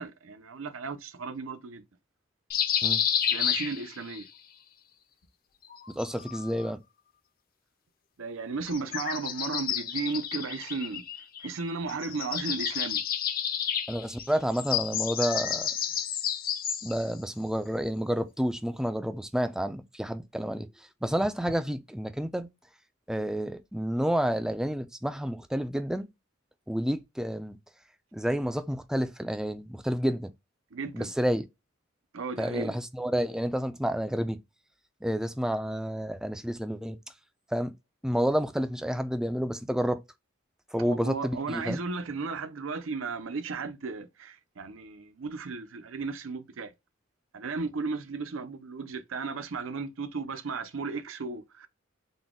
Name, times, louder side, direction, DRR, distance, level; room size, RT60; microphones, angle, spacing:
voice 1, 0.0-1.8 3.3-4.3 8.2-11.0 11.4-13.0 30.7-31.1 32.1-32.8 40.8-46.7 47.3-51.7, right 4 dB, 80° right, 0.6 m, -35 dB
sound 1, 2.5-4.2 5.7-6.7 8.6-11.6 11.9-17.1, left 9 dB, 50° left, 0.6 m, -31 dB
voice 2, 6.0-6.8 13.9-15.7 16.8-20.7 21.0-22.5 23.1-26.1 26.7-27.6 28.1-30.3 30.9-31.4 32.4-34.4 35.0-37.0 37.5-37.7 38.0-40.0 40.7-41.8, equal, 5° right, 0.4 m, -29 dB
4.0 x 2.3 x 3.5 m
head